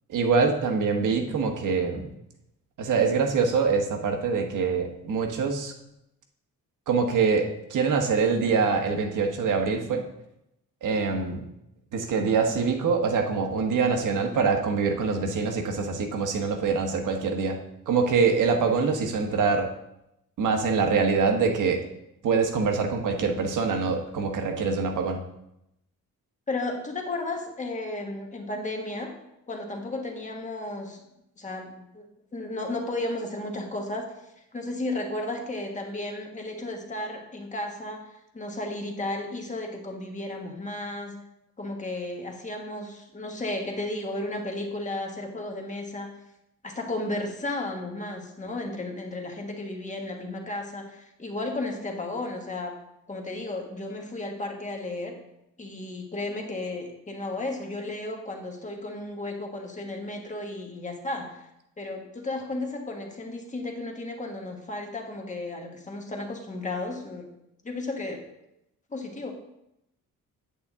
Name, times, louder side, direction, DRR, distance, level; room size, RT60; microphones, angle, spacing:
voice 1, 0.1-2.1 2.8-5.7 6.9-10.0 10.8-11.4 11.9-17.6 17.9-19.7 20.4-21.8 22.2-25.2, right 5 dB, 65° right, 3 dB, 1.3 m, -24 dB
voice 2, 26.5-29.1 29.5-31.0 31.4-32.0 32.3-34.1 34.5-38.0 38.3-41.2 41.6-46.1 46.6-52.8 53.1-55.2 55.6-61.5 61.8-67.3 67.6-68.2 68.9-69.3, left 2 dB, 20° left, 2 dB, 1.3 m, -33 dB
8.6 x 8.6 x 3.6 m, 0.83 s
cardioid pair, 165°, 33 cm